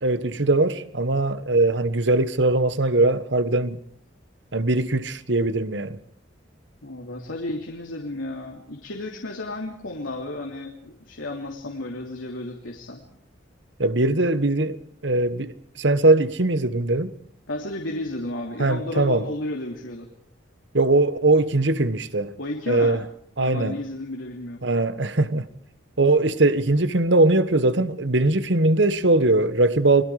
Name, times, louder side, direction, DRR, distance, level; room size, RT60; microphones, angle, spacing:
voice 1, 0.0-3.8 4.5-6.0 13.8-17.1 18.6-19.2 20.7-22.3 22.7-23.0 23.4-23.8 24.6-25.5 26.0-30.0, right 2 dB, 65° right, 1.4 m, -21 dB
voice 2, 6.8-13.0 17.5-20.1 22.4-23.0 23.4-24.6, left 1 dB, 85° left, 3.1 m, -33 dB
30.0 x 22.0 x 5.0 m
head